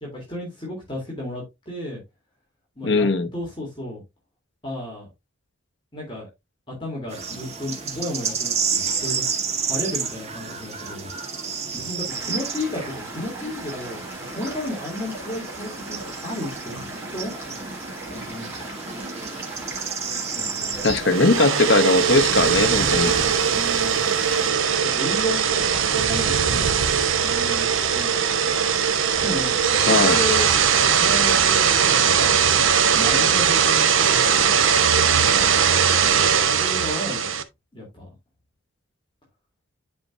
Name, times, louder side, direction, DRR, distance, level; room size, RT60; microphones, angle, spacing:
voice 1, 0.0-2.0 2.8-3.1 3.3-4.0 4.6-5.1 5.9-6.2 6.8-9.2 9.5-11.1 11.7-17.6 18.0-18.6 20.3-20.8 23.5-24.2 24.9-28.6 29.1-30.5 30.8-32.4 32.9-34.6 35.1-35.5 36.4-37.4 37.7-38.1, left 1 dB, 25° left, 3.2 m, -33 dB
voice 2, 2.8-3.3 20.8-23.1 29.9-30.2, left 3 dB, 60° left, 0.9 m, -19 dB
sound 1, 7.1-24.5, right 5 dB, 30° right, 1.8 m, -31 dB
sound 2, 12.1-31.5, right 2 dB, 10° right, 3.4 m, -38 dB
sound 3, 20.9-37.4, right 7 dB, 75° right, 1.0 m, -20 dB
10.5 x 5.5 x 2.6 m
head